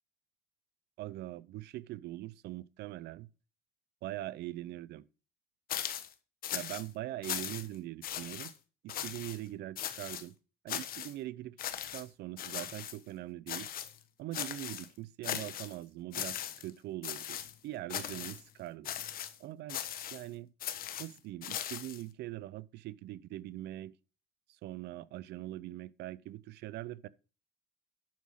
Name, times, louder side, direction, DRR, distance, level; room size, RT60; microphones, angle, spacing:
voice 1, 1.0-3.3 4.0-5.0 6.5-8.5 8.8-10.3 10.6-11.6 11.9-13.7 14.2-18.9 19.4-19.8 20.1-20.5 21.0-23.9 24.6-27.1, right 15 dB, 75° right, 0.6 m, -42 dB
sound 1, 5.7-6.1 6.4-6.9 7.2-7.8 8.0-8.5 8.9-9.4 9.8-10.2 10.7-11.1 11.6-12.0 12.4-13.0 13.5-14.0 14.3-14.9 15.2-15.8 16.1-16.7 17.0-17.5 17.9-18.4 18.8-19.4 19.7-20.2 20.6-22.0, left 10 dB, 60° left, 1.2 m, -39 dB
10.5 x 6.3 x 5.6 m
cardioid pair, 110°, 17 cm